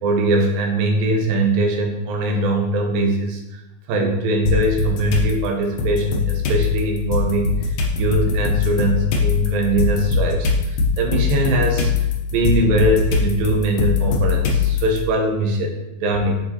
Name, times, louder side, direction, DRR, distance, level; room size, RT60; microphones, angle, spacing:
voice 1, 0.0-3.6 3.9-7.7 8.0-11.9 12.3-16.4, right 1 dB, 75° right, 2 dB, 2.6 m, -21 dB
sound 1, 4.5-5.3 5.8-15.0, left 5 dB, 80° left, 1.6 m, -21 dB
9.4 x 4.0 x 2.8 m, 0.96 s
omnidirectional pair, 4.3 m